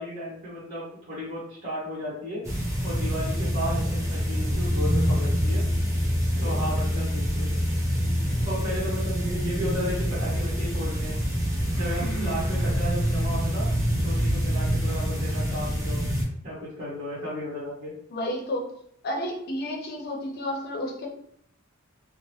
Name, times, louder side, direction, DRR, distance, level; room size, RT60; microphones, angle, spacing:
voice 1, 0.0-2.4 2.8-5.6 6.4-7.6 8.4-11.2 11.7-13.7 14.0-16.0 16.4-17.9, equal, 40° right, -8 dB, 1.1 m, -34 dB
sound 1, 2.4-16.2, equal, 15° right, 0.7 m, -26 dB
voice 2, 6.3-6.8 12.0-12.4 18.1-18.7 19.0-21.1, equal, 50° left, 1 dB, 0.6 m, -32 dB
2.9 x 2.0 x 3.0 m, 0.70 s
head